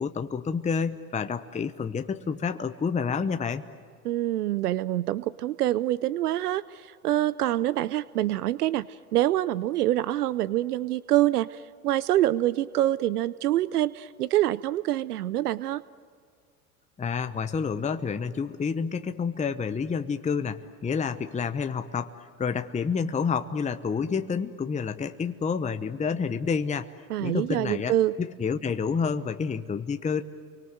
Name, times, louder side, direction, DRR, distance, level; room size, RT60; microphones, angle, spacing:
voice 1, 0.0-3.6 17.0-22.1 22.4-26.9 27.2-30.2, left 5 dB, 15° left, 9 dB, 0.9 m, -29 dB
voice 2, 4.0-15.8 27.1-28.1, right 14 dB, 85° right, 19 dB, 0.6 m, -26 dB
30.0 x 24.0 x 7.8 m, 2.1 s
hypercardioid pair, 85°, 45 cm